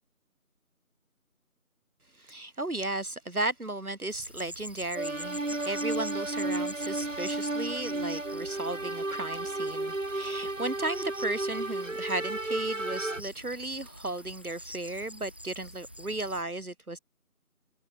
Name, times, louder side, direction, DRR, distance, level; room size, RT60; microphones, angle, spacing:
voice 1, 2.1-17.0, right 2 dB, 75° right, 3.7 m, -35 dB
sound 1, 4.1-16.4, equal, 5° right, 2.3 m, -46 dB
sound 2, 5.0-13.2, right 2 dB, 55° right, 3.4 m, -33 dB
figure-of-eight pair, 175°, 44 cm